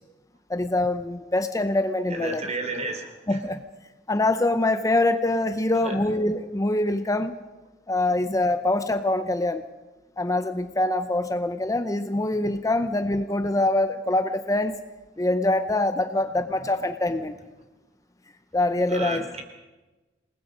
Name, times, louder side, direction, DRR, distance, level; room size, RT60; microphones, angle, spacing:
voice 1, 0.5-2.5 3.3-3.6 4.1-7.4 7.9-9.6 10.2-14.8 15.2-17.4 18.5-19.3, left 2 dB, 20° left, 9 dB, 0.7 m, -24 dB
voice 2, 2.1-3.4 5.8-6.0 18.9-19.4, right 3 dB, 40° right, 5 dB, 3.5 m, -32 dB
28.0 x 19.5 x 5.2 m, 1.2 s
head